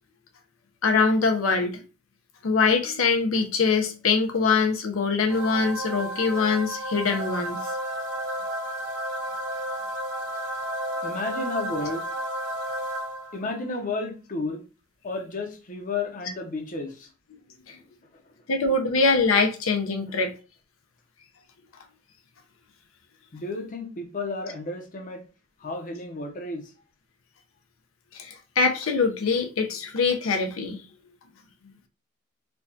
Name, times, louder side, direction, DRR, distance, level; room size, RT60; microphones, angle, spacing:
voice 1, 0.8-1.8 2.4-7.6 17.7-17.8 18.5-20.3 28.1-30.8, left 4 dB, 85° left, 0.6 m, -23 dB
sound 1, 5.3-13.5, right 1 dB, 70° right, 1.4 m, -32 dB
voice 2, 11.0-12.0 13.3-14.6 15.0-17.1 17.7-17.9 18.1-18.2 20.1-20.2 23.3-25.2 25.6-26.7, left 3 dB, 40° left, 0.6 m, -32 dB
4.5 x 2.3 x 2.6 m
head